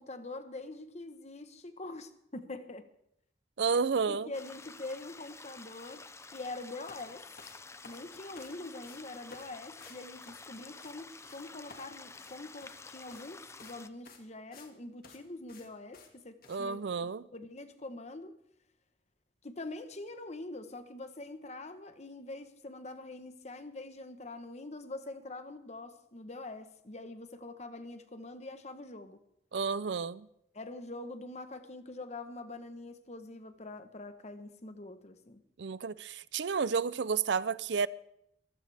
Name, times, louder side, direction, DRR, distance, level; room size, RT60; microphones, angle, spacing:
voice 1, 0.0-2.8 4.1-6.1 6.3-7.2 7.8-16.9 17.3-18.3 19.4-29.2 30.5-35.4, left 2 dB, 40° left, 1.1 m, -44 dB
voice 2, 3.6-4.3 16.5-17.2 29.5-30.3 35.6-37.9, right 5 dB, 80° right, 0.5 m, -31 dB
sound 1, 4.3-13.9, left 4 dB, 15° left, 0.5 m, -50 dB
sound 2, 6.9-7.1 7.4-8.6 8.8-9.0 9.3-9.5 9.8-10.0 10.3-10.9 11.2-11.4 11.7-12.8 13.1-13.3 13.6-13.8 14.1-14.7 15.0-15.2 15.5-15.7 15.9-16.1 16.4-16.6, left 4 dB, 55° left, 2.2 m, -54 dB
22.5 x 15.5 x 3.5 m
head